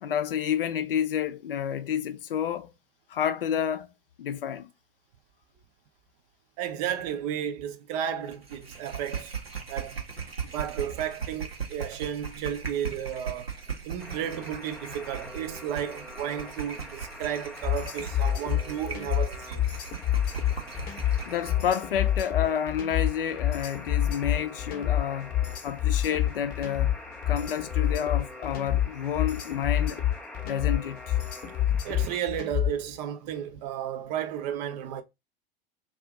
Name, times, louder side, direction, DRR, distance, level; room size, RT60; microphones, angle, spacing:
voice 1, 0.0-2.7 3.1-3.9 4.2-4.7 21.3-25.3 25.6-26.9 27.3-30.0 30.4-31.2, left 9 dB, 70° left, 0.5 m, -29 dB
voice 2, 6.6-9.4 9.7-10.0 10.4-13.5 13.8-19.7 20.8-20.9 31.7-35.0, right 9 dB, 45° right, 0.5 m, -33 dB
sound 1, 8.3-21.7, right 6 dB, 85° right, 0.8 m, -39 dB
Alarm, 14.0-32.2, left 1 dB, 5° left, 0.3 m, -45 dB
sound 2, 17.6-32.9, left 12 dB, 30° left, 0.7 m, -27 dB
2.5 x 2.4 x 3.6 m
figure-of-eight pair, 85°, 29 cm